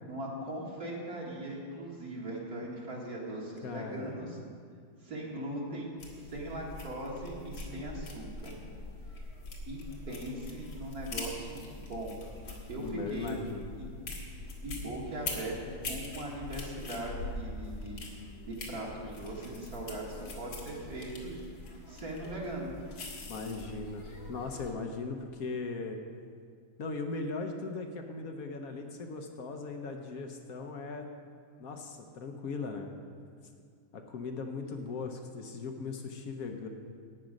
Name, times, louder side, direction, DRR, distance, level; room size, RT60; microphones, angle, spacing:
voice 1, 0.0-4.4 5.0-8.6 9.7-9.8 10.1-12.2 12.7-13.4 13.8-13.9 14.6-15.6 15.9-18.1 18.4-20.1 20.4-21.4 21.9-22.7, right 1 dB, 50° right, -4 dB, 2.3 m, -39 dB
voice 2, 3.6-4.3 12.8-13.7 23.2-26.0 26.8-31.1 31.6-32.9 33.9-36.7, left 4 dB, 60° left, 4 dB, 1.0 m, -38 dB
sound 1, 6.0-24.7, left 2 dB, 80° left, 2.4 m, -43 dB
12.0 x 8.8 x 5.2 m, 2.2 s
omnidirectional pair, 2.1 m